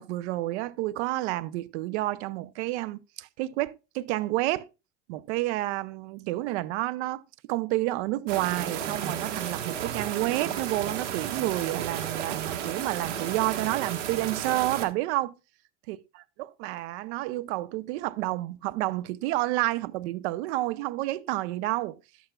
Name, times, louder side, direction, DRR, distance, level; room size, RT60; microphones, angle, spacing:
voice 1, 0.0-4.7 5.1-7.2 7.5-15.3 15.9-22.0, right 17 dB, 70° right, 0.7 m, -30 dB
sound 1, 8.3-14.9, right 9 dB, 85° right, 1.6 m, -33 dB
11.0 x 8.2 x 2.2 m
hypercardioid pair, 95°, 36 cm